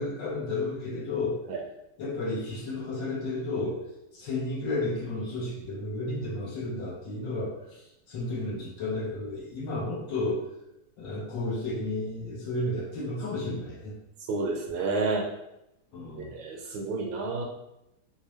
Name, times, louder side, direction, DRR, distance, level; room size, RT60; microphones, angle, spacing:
voice 1, 0.0-1.4 2.0-3.8 4.1-10.5 11.0-13.9 15.9-16.4, left 2 dB, 65° left, -3 dB, 1.4 m, -32 dB
voice 2, 14.3-15.3 16.2-17.4, right 3 dB, 75° right, 0 dB, 1.3 m, -30 dB
3.4 x 2.6 x 3.1 m, 0.86 s
omnidirectional pair, 2.3 m